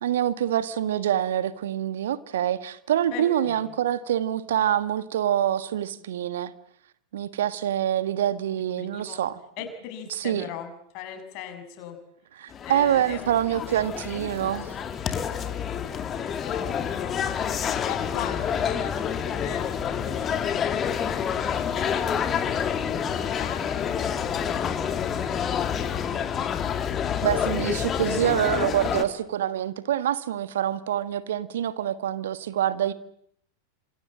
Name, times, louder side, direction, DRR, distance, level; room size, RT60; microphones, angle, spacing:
voice 1, 0.0-6.5 7.1-9.4 10.1-10.4 12.4-14.7 27.2-32.9, right 11 dB, 60° right, 1.5 m, -26 dB
voice 2, 3.1-3.7 8.8-9.2 9.6-12.0 12.6-14.1 16.2-24.0 24.3-26.2 26.9-27.6, left 9 dB, 40° left, 6.7 m, -40 dB
sound 1, 12.5-29.0, left 8 dB, 25° left, 2.5 m, -28 dB
29.5 x 27.0 x 7.5 m
figure-of-eight pair, 90°, 0 cm